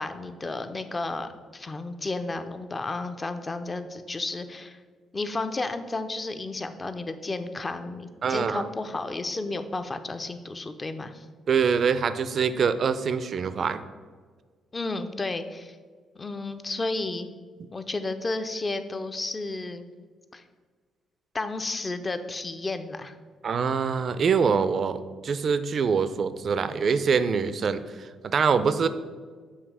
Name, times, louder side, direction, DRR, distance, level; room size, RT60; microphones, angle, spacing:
voice 1, 0.0-4.8 5.1-11.3 14.7-15.8 16.2-17.3 17.7-19.8 20.3-20.4 21.3-23.1, left 2 dB, 25° left, 9 dB, 0.4 m, -32 dB
voice 2, 8.2-8.7 11.5-13.8 23.4-28.9, right 6 dB, 50° right, 12 dB, 0.3 m, -24 dB
7.2 x 2.8 x 4.8 m, 1.5 s
cardioid pair, 90°, 0 cm